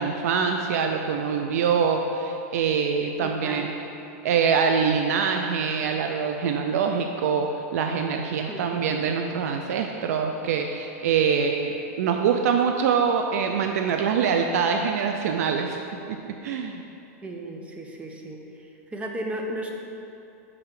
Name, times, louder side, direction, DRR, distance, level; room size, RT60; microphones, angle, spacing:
voice 1, 0.0-3.7 4.2-16.8, right 6 dB, 80° right, 4 dB, 0.4 m, -24 dB
voice 2, 3.2-3.7 8.5-8.9 17.2-19.7, right 1 dB, 15° right, 2 dB, 0.6 m, -35 dB
5.4 x 4.8 x 4.8 m, 2.8 s
supercardioid pair, 145°, 8 cm